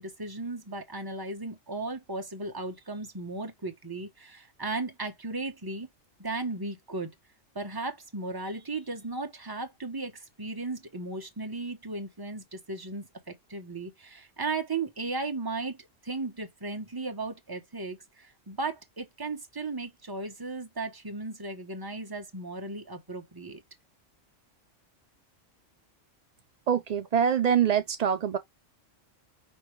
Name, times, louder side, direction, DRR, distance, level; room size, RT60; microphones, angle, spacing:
voice 1, 0.0-5.9 6.2-7.1 7.5-23.6, right 3 dB, 20° right, 0.9 m, -36 dB
voice 2, 26.7-28.4, right 8 dB, 70° right, 0.3 m, -24 dB
5.4 x 3.0 x 3.1 m
omnidirectional pair, 1.3 m